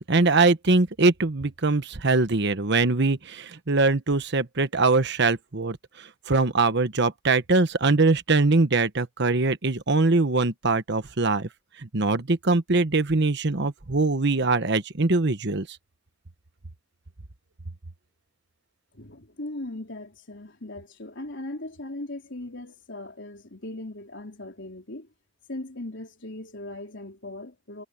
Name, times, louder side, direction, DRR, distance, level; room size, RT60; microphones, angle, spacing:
voice 1, 0.0-11.5 11.8-15.8, right 3 dB, 60° right, 1.2 m, -22 dB
voice 2, 18.9-25.1 25.5-27.8, left 1 dB, 65° left, 4.0 m, -38 dB
head